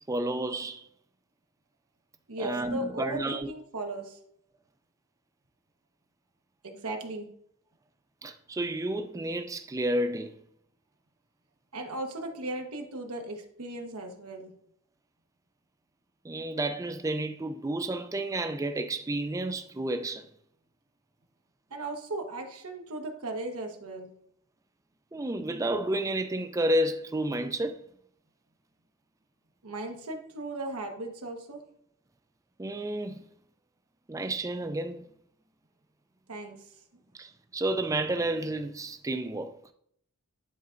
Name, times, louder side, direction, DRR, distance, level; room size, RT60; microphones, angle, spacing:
voice 1, 0.1-0.9 2.4-3.5 8.2-10.3 16.2-20.3 25.1-27.8 32.6-33.2 34.1-35.0 37.2-39.6, right 1 dB, 15° right, 0.3 m, -31 dB
voice 2, 2.3-4.2 6.6-7.3 11.7-14.5 21.7-24.1 29.6-31.6 36.3-36.6, right 2 dB, 90° right, 1.1 m, -37 dB
10.5 x 3.9 x 2.5 m
head